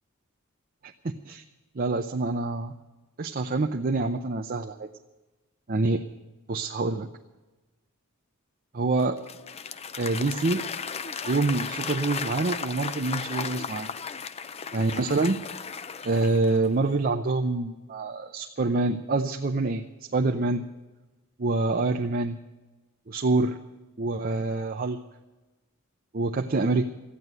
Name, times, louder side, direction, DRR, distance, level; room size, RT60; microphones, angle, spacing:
voice 1, 0.8-1.4 1.8-2.7 3.2-4.9 5.7-6.0 6.5-7.1 8.7-9.2 10.0-10.7 11.2-13.9 14.7-15.4 16.0-20.6 21.4-22.4 23.1-23.6 24.0-25.0 26.1-26.8, right 3 dB, 45° right, 4 dB, 0.6 m, -26 dB
Applause / Crowd, 9.0-16.8, left 6 dB, 30° left, 0.5 m, -35 dB
14.0 x 9.6 x 9.0 m, 1.1 s
head